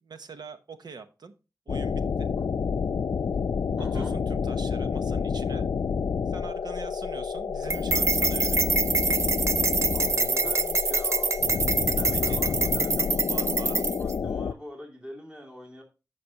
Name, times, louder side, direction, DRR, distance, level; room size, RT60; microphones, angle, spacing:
voice 1, 0.0-1.3 1.7-2.3 3.3-3.4 3.9-5.7 6.3-8.6 11.5-11.7 12.1-12.4 13.2-13.9, right 4 dB, 90° right, 10 dB, 0.9 m, -43 dB
sound 1, 1.7-14.5, left 6 dB, 70° left, 0.4 m, -29 dB
voice 2, 3.8-4.1 9.9-11.3 11.9-15.8, equal, 15° right, -1 dB, 2.4 m, -43 dB
sound 2, 7.7-14.1, right 4 dB, 45° right, 0.3 m, -26 dB
14.5 x 5.2 x 2.8 m, 0.30 s
wide cardioid pair, 105°, 7 cm